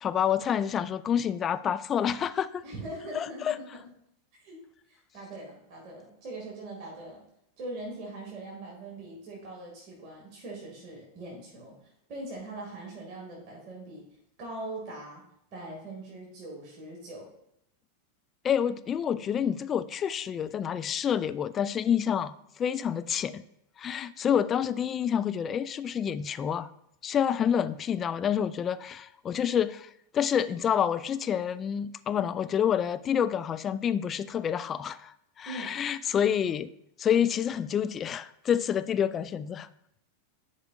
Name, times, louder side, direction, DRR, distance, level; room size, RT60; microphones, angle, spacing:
voice 1, 0.0-2.6 3.1-3.6 18.4-22.3 22.6-23.4 23.8-26.7 27.0-36.7 37.0-39.7, left 8 dB, 25° left, 13 dB, 0.3 m, -28 dB
voice 2, 2.6-3.6 4.4-4.6 4.9-7.2 7.6-14.1 14.4-15.2 15.5-17.3 35.4-35.8, right 2 dB, 40° right, -2 dB, 2.0 m, -41 dB
11.5 x 5.0 x 2.4 m, 0.75 s
figure-of-eight pair, 90°, 0 cm